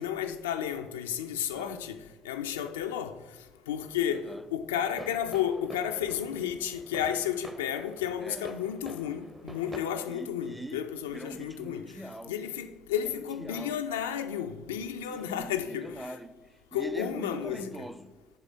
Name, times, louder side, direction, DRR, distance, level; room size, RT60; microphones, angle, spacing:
voice 1, 0.0-2.0 2.2-3.2 3.7-11.8 12.3-16.1 16.7-17.9, left 9 dB, 85° left, 0.3 m, -32 dB
voice 2, 1.5-1.8 4.1-4.4 8.2-8.5 10.1-10.8 11.1-12.4 13.0-13.8 15.1-18.2, right 1 dB, 5° right, 0.5 m, -42 dB
sound 1, 4.8-9.8, right 1 dB, 25° right, 0.8 m, -47 dB
6.7 x 3.6 x 6.2 m
hypercardioid pair, 45°, 0 cm